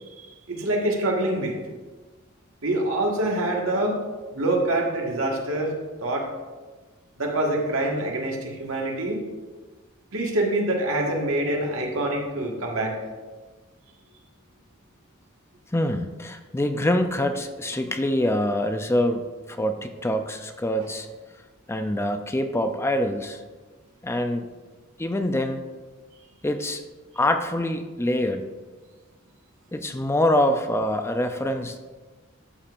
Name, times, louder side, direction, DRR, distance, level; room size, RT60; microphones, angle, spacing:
voice 1, 0.2-1.6 2.6-4.0 4.3-5.7 6.0-6.3 7.2-9.2 10.1-13.0 20.8-20.9, right 1 dB, 85° right, 0 dB, 1.6 m, -25 dB
voice 2, 15.7-19.2 19.5-21.1 21.7-23.4 24.0-24.5 25.0-25.6 26.4-26.8 27.2-28.4 29.7-31.8, left 1 dB, 15° left, 7 dB, 0.4 m, -25 dB
12.0 x 7.0 x 2.5 m, 1.3 s
head